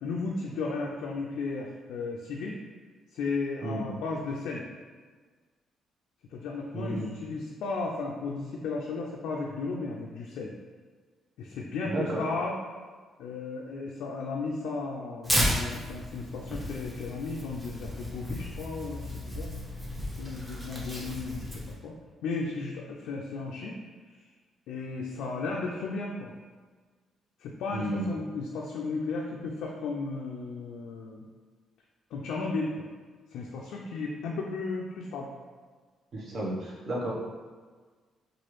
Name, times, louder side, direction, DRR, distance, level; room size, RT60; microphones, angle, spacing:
voice 1, 0.0-2.6 3.1-4.6 6.3-10.5 11.4-12.6 13.2-19.5 20.2-21.9 22.2-23.8 24.7-26.3 27.4-31.2 32.1-32.8 33.3-35.3, left 3 dB, 85° left, -2 dB, 0.3 m, -34 dB
voice 2, 6.7-7.1 11.9-12.3 27.7-28.1 36.1-37.1, right 1 dB, 50° right, -3 dB, 0.8 m, -32 dB
Tearing, 15.2-21.7, equal, 15° right, 0.8 m, -33 dB
3.0 x 2.3 x 3.0 m, 1.5 s
cardioid pair, 90°, 0 cm